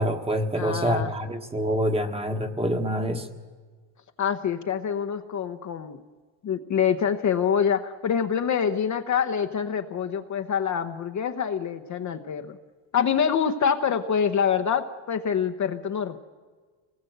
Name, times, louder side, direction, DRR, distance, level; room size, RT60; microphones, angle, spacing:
voice 1, 0.0-3.3, equal, 10° right, 6 dB, 1.5 m, -26 dB
voice 2, 0.6-1.1 4.2-6.0 6.4-12.6 12.9-16.2, left 7 dB, 35° left, 7 dB, 1.0 m, -26 dB
26.5 x 19.5 x 8.0 m, 1.5 s
cardioid pair, 140°, 47 cm